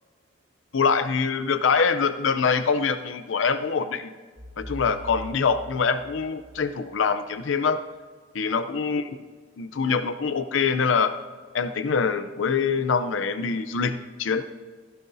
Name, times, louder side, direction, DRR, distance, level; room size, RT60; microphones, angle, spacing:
voice 1, 0.7-4.1 4.6-7.8 8.3-9.1 9.6-11.2 11.5-14.4, left 5 dB, 80° left, 10 dB, 0.6 m, -24 dB
sound 1, 4.4-7.2, left 1 dB, 40° right, 1.2 m, -42 dB
16.0 x 15.5 x 2.7 m, 1.5 s
head